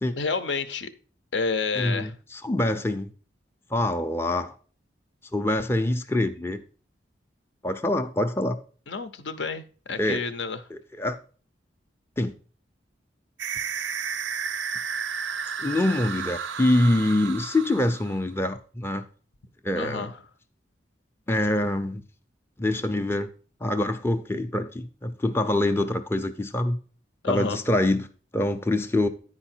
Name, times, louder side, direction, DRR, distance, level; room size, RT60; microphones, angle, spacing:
voice 1, 0.2-0.9 1.3-2.1 8.9-10.6 19.8-20.1 27.2-27.6, left 4 dB, 75° left, 0.7 m, -29 dB
voice 2, 1.8-3.1 3.7-4.5 5.3-6.6 7.6-8.6 10.0-10.2 10.7-11.2 12.2-12.3 15.6-19.0 19.6-20.1 21.3-22.0 22.6-23.3 23.6-26.8 27.3-28.1 28.3-29.1, left 1 dB, 15° left, 0.4 m, -25 dB
sound 1, 13.4-18.3, right 6 dB, 85° right, 0.5 m, -32 dB
9.8 x 4.8 x 4.3 m
head